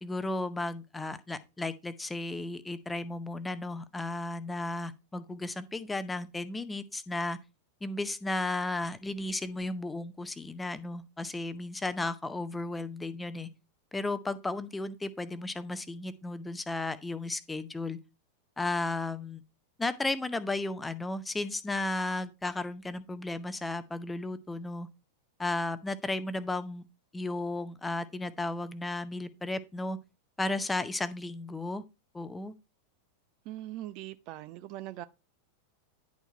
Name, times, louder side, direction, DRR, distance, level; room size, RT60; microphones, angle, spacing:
voice 1, 0.0-7.4 7.8-13.5 13.9-18.0 18.6-19.4 19.8-24.9 25.4-26.8 27.1-30.0 30.4-31.8 32.1-32.5, left 2 dB, 10° left, 0.7 m, -34 dB
voice 2, 33.5-35.0, right 14 dB, 40° right, 0.5 m, -41 dB
10.5 x 4.5 x 4.3 m
figure-of-eight pair, 90°, 0 cm